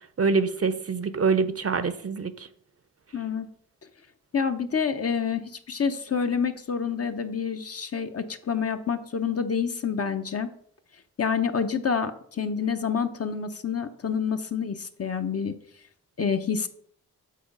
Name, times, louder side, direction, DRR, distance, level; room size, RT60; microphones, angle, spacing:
voice 1, 0.2-2.5, right 4 dB, 40° right, 12 dB, 0.7 m, -25 dB
voice 2, 3.1-3.5 4.3-10.5 11.2-15.5 16.2-16.7, left 6 dB, 40° left, 8 dB, 0.8 m, -28 dB
7.6 x 3.9 x 5.2 m, 0.63 s
cardioid pair, 50°, 35 cm